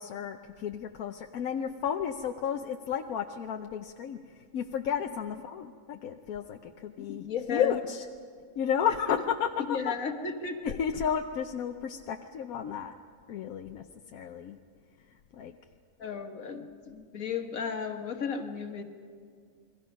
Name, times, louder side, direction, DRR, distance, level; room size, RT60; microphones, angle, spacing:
voice 1, 0.0-8.0 8.6-9.9 10.6-13.0 13.3-13.8 14.1-14.6 15.3-15.5, left 8 dB, 90° left, 4 dB, 1.2 m, -32 dB
voice 2, 7.0-7.8 8.9-9.0 9.7-10.8 16.0-18.8, left 6 dB, 70° left, 5 dB, 1.9 m, -34 dB
29.0 x 22.0 x 5.3 m, 2.1 s
omnidirectional pair, 1.5 m